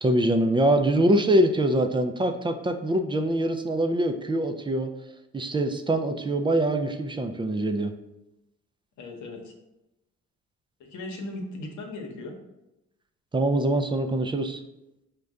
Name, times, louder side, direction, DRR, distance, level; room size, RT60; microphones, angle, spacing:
voice 1, 0.0-4.9 5.3-7.9 13.3-14.6, right 1 dB, 15° right, 7 dB, 0.3 m, -24 dB
voice 2, 9.0-9.5 10.8-12.4, left 2 dB, 75° left, 2 dB, 0.9 m, -37 dB
5.0 x 2.2 x 3.5 m, 0.91 s
cardioid pair, 90°, 30 cm